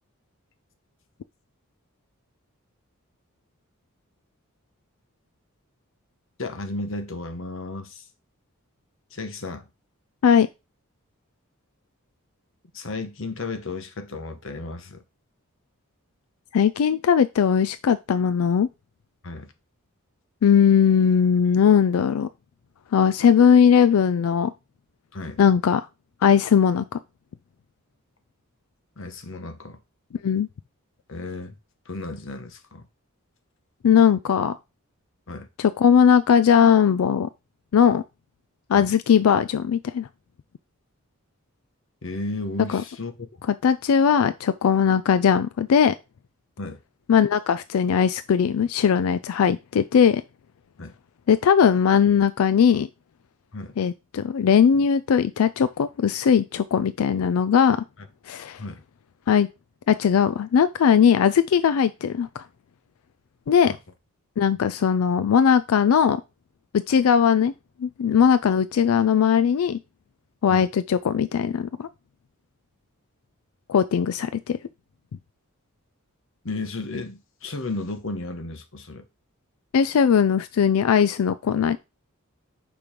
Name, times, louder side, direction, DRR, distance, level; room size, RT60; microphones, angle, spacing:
voice 1, 6.4-8.0 9.1-9.7 12.7-15.0 19.2-19.5 25.1-25.4 29.0-29.8 31.1-31.5 31.8-32.9 35.3-35.5 38.7-39.0 42.0-43.1 46.6-46.8 50.8-50.9 53.5-53.7 58.6-58.8 63.7-63.8 70.5-70.7 76.4-79.0, left 2 dB, 60° left, 1.1 m, -33 dB
voice 2, 16.5-18.7 20.4-22.3 22.9-24.5 25.4-25.9 26.2-27.0 30.2-30.5 33.8-34.6 35.6-37.3 37.7-38.0 38.7-40.1 42.7-42.8 43.6-45.9 47.1-50.2 51.3-52.9 53.8-57.8 58.3-58.6 59.3-59.5 59.9-62.4 63.5-63.7 64.4-66.2 66.9-67.5 67.8-69.8 70.4-71.9 73.7-74.6 79.7-81.8, left 7 dB, 80° left, 0.4 m, -19 dB
5.3 x 4.6 x 5.1 m
head